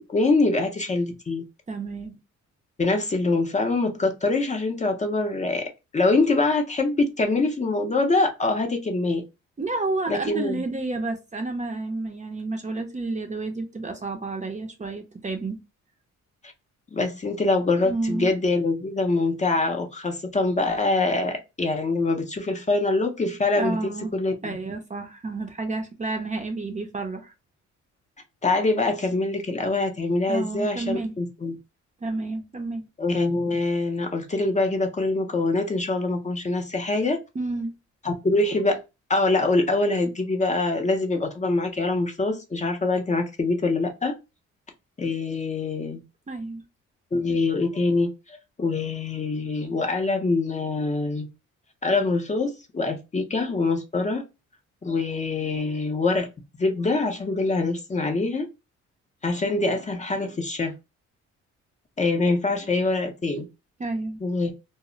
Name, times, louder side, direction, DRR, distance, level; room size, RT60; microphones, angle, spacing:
voice 1, 0.1-1.4 2.8-5.6 5.9-9.2 10.1-10.6 16.9-24.6 28.4-31.5 33.0-37.2 38.0-38.8 39.1-44.1 45.0-46.0 47.1-51.3 51.8-54.2 54.8-56.3 56.6-58.5 59.2-60.7 62.0-63.5 64.2-64.5, left 3 dB, 25° left, 0.5 m, -24 dB
voice 2, 1.7-2.2 9.6-15.6 17.8-18.3 23.6-24.1 24.4-27.3 30.3-31.2 32.0-32.9 37.4-37.7 46.3-46.6 63.8-64.2, right 3 dB, 25° right, 0.5 m, -30 dB
2.0 x 2.0 x 3.6 m
cardioid pair, 90°, 30 cm